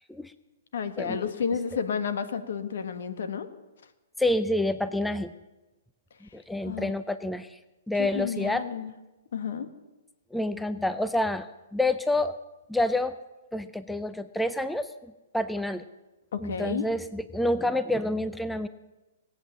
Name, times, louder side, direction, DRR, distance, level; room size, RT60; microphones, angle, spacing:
voice 1, 0.7-3.5 6.6-6.9 8.0-8.9 9.3-9.7 16.3-16.9, left 6 dB, 70° left, 10 dB, 1.4 m, -31 dB
voice 2, 4.2-5.3 6.3-7.5 7.9-8.6 10.3-11.5 11.7-12.4 12.7-13.1 13.5-14.9 15.3-15.8 16.4-18.7, left 1 dB, 5° left, 12 dB, 0.4 m, -28 dB
19.0 x 8.2 x 7.5 m, 1.1 s
hypercardioid pair, 145°, 0 cm